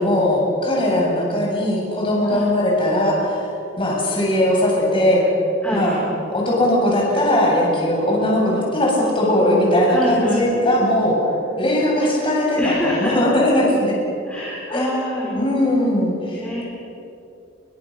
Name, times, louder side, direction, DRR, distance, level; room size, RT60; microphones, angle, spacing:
voice 1, 0.0-3.5 3.8-5.2 5.7-6.0 6.3-11.2 11.6-13.9 14.7-14.9 15.3-16.4, left 1 dB, 25° left, -3 dB, 7.9 m, -19 dB
voice 2, 5.6-6.0 9.9-10.4 12.6-13.2 14.3-15.4 16.3-16.6, left 1 dB, 5° left, -5 dB, 4.8 m, -26 dB
29.5 x 25.0 x 6.8 m, 2.8 s
head